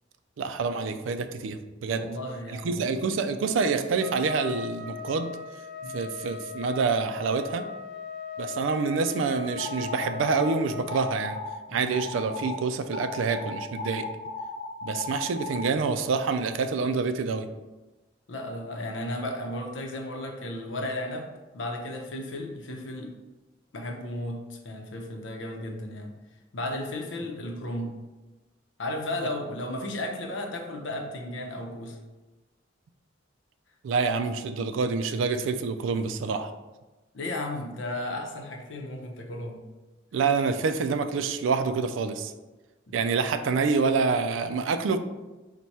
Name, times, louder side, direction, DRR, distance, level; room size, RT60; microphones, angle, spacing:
voice 1, 0.4-2.1 2.6-5.3 5.9-7.6 8.4-11.4 11.7-14.1 14.8-17.5 22.2-22.3 33.8-36.5 40.1-42.3 42.9-45.0, right 4 dB, 85° right, 9 dB, 0.3 m, -27 dB
voice 2, 2.0-2.9 5.8-6.0 11.7-11.9 18.3-21.3 21.5-23.1 23.7-26.1 26.5-27.9 28.8-32.0 37.1-39.6 42.9-43.0, left 1 dB, 80° left, 2 dB, 0.7 m, -34 dB
Trumpet, 4.0-11.3, left 6 dB, ahead, 0.7 m, -38 dB
sound 1, 9.6-10.5 10.9-11.6 11.9-12.6 12.9-15.6, left 4 dB, 45° left, 0.7 m, -36 dB
4.1 x 2.2 x 4.5 m, 1.2 s
head